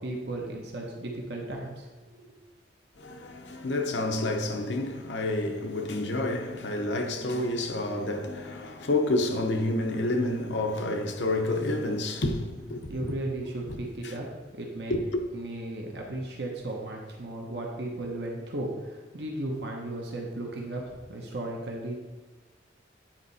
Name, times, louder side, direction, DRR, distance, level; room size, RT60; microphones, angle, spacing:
voice 1, 0.0-1.8 2.1-2.4 12.9-14.3 14.5-15.0 15.3-21.9, right 1 dB, 65° right, 1.0 m, -35 dB
voice 2, 3.0-13.1 13.7-13.8 14.0-14.1 14.9-15.2, left 2 dB, 75° left, 0.8 m, -29 dB
Acoustic guitar, 8.0-11.2, left 2 dB, 30° left, 1.3 m, -52 dB
9.0 x 4.2 x 4.1 m
head